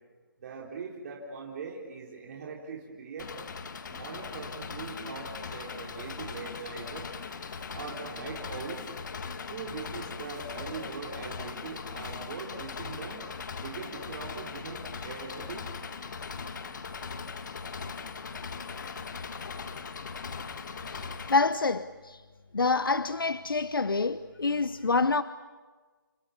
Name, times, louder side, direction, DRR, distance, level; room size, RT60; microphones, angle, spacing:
voice 1, 0.4-3.3 3.9-7.0 7.7-8.8 9.5-13.2 13.6-15.7, right 5 dB, 45° right, 4.1 m, -41 dB
Engine, 3.2-21.4, left 5 dB, 60° left, 1.9 m, -39 dB
voice 2, 20.9-22.2 22.5-25.2, left 3 dB, 85° left, 0.9 m, -27 dB
30.0 x 25.5 x 7.1 m
figure-of-eight pair, 145°, 11 cm